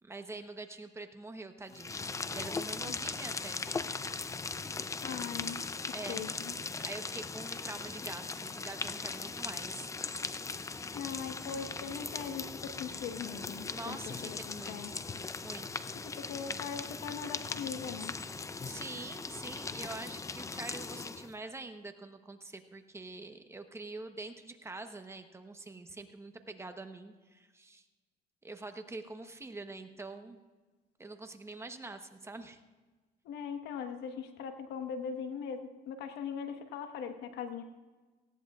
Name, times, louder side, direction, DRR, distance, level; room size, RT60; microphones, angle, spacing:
voice 1, 0.0-3.7 5.9-6.2 6.8-9.9 13.7-15.1 15.4-15.8 18.6-27.8 28.4-30.4 31.0-32.6, right 2 dB, 15° right, 6 dB, 1.0 m, -45 dB
sound 1, 1.7-21.3, left 4 dB, 20° left, 0.5 m, -39 dB
voice 2, 5.0-5.6 6.1-6.5 10.9-14.0 14.2-14.9 16.0-18.1 33.2-37.6, left 7 dB, 80° left, 7 dB, 1.3 m, -40 dB
18.5 x 16.5 x 2.4 m, 1.3 s
cardioid pair, 110°, 17 cm